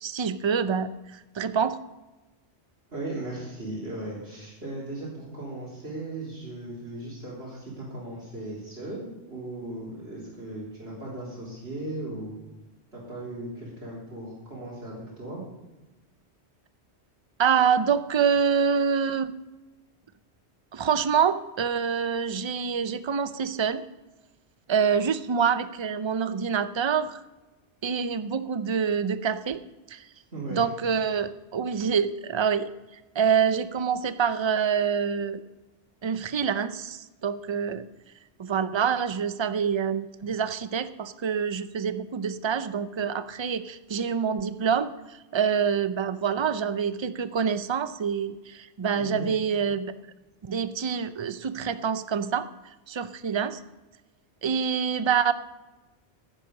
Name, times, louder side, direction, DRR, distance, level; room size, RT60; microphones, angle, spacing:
voice 1, 0.0-1.8 17.4-19.3 20.7-23.8 24.7-27.2 27.8-29.6 29.9-30.0 30.5-32.7 33.1-35.4 36.0-37.9 38.4-49.9 50.4-52.5 52.9-53.6 54.4-55.3, right 7 dB, 35° right, 12 dB, 0.5 m, -26 dB
voice 2, 2.9-12.3 12.9-15.4 30.3-30.6 49.0-49.3, right 2 dB, 75° right, -7 dB, 4.0 m, -37 dB
10.5 x 10.0 x 6.6 m, 1.1 s
omnidirectional pair, 1.1 m